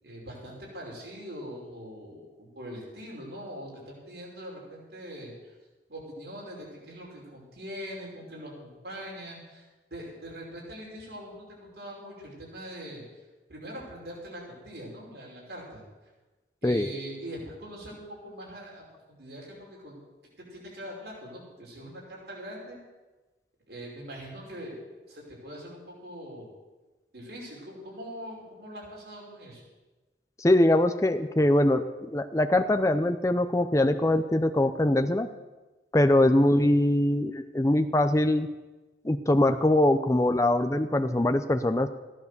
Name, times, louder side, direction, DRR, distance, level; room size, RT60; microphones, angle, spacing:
voice 1, 0.0-5.6 5.9-13.0 13.5-15.8 16.6-20.0 20.5-22.8 23.7-24.8 25.1-26.5 27.1-29.6, equal, 60° right, -3 dB, 5.4 m, -42 dB
voice 2, 30.4-35.3 35.9-38.5 39.0-41.9, left 1 dB, 15° left, 7 dB, 0.6 m, -23 dB
15.5 x 11.0 x 6.8 m, 1.2 s
head